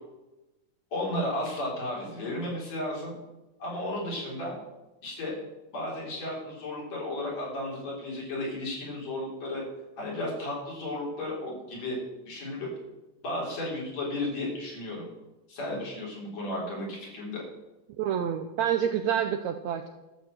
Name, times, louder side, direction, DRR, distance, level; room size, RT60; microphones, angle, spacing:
voice 1, 0.9-3.2 3.6-4.6 5.0-5.3 5.7-9.6 10.0-12.0 12.3-12.7 13.2-15.0 15.5-17.4, left 1 dB, 50° left, -3 dB, 5.0 m, -34 dB
voice 2, 18.0-19.9, right 9 dB, 85° right, 7 dB, 1.6 m, -28 dB
12.0 x 6.7 x 7.8 m, 1.0 s
omnidirectional pair, 3.9 m